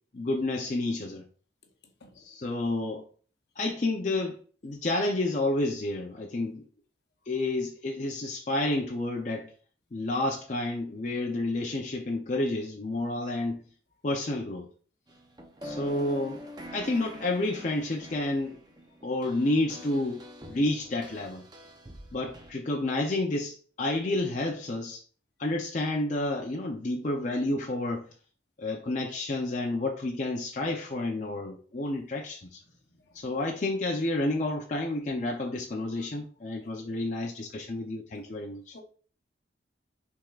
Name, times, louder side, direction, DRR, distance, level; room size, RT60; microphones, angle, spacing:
voice 1, 0.1-1.2 2.1-3.0 3.6-4.4 4.6-6.6 7.3-9.5 9.9-13.6 14.0-14.7 15.6-16.4 16.7-18.6 19.0-21.4 22.1-25.0 25.4-28.1 28.6-32.6 33.1-38.8, left 2 dB, 40° left, 0.5 m, -30 dB
sound 1, 15.1-22.5, equal, 20° right, 0.6 m, -45 dB
voice 2, 36.6-37.1 38.7-38.8, left 2 dB, 65° left, 0.8 m, -54 dB
5.9 x 3.5 x 2.4 m
head